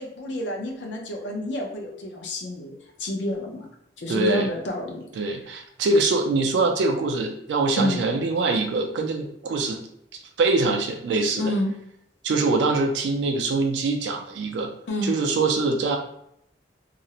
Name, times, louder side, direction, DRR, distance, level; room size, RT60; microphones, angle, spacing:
voice 1, 0.0-2.7 3.0-3.7 4.0-5.3 7.8-8.0 11.4-11.7 14.9-15.1, left 1 dB, 90° left, 2 dB, 0.5 m, -29 dB
voice 2, 4.1-4.5 5.2-9.8 10.4-11.5 12.2-14.7 15.0-16.0, right 3 dB, 85° right, 4 dB, 0.3 m, -23 dB
2.4 x 2.0 x 2.7 m, 0.74 s
head